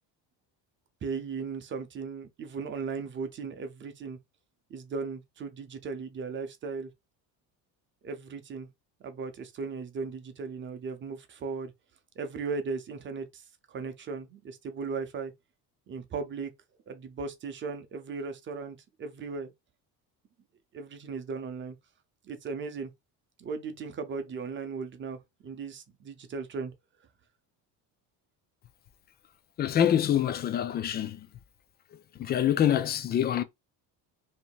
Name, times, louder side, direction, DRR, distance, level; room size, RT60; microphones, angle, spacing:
voice 1, 1.0-4.2 4.7-6.9 8.0-8.7 9.0-11.7 12.2-15.3 15.9-16.5 16.9-19.5 20.7-21.8 22.2-22.9 23.4-26.7, right 4 dB, 30° right, 0.7 m, -37 dB
voice 2, 29.6-31.3 32.2-33.4, left 10 dB, 25° left, 0.3 m, -25 dB
3.1 x 2.8 x 4.5 m
cardioid pair, 160°, 39 cm